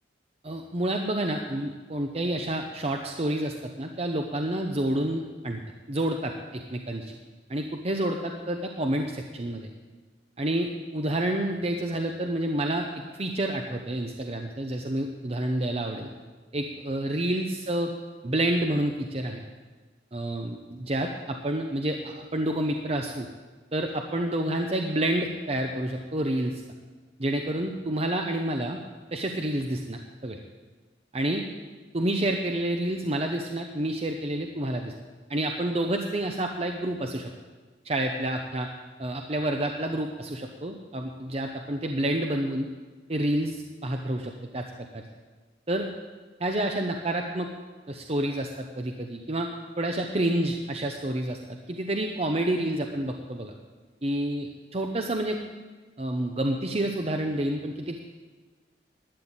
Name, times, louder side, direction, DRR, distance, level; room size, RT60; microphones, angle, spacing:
voice 1, 0.4-5.6 5.9-7.2 7.5-9.7 10.4-12.9 13.2-16.1 16.5-17.9 18.2-19.4 20.1-23.3 23.7-26.6 27.2-28.8 29.1-30.4 31.1-31.4 31.9-34.9 35.3-37.3 37.8-38.7 39.0-42.7 43.1-44.6 44.9-45.0 45.7-45.9 46.4-47.5 47.9-49.5 49.8-51.4 51.7-53.5 54.0-55.4 56.0-58.0, right 1 dB, 35° right, 3 dB, 0.8 m, -29 dB
12.0 x 9.1 x 8.9 m, 1.4 s
head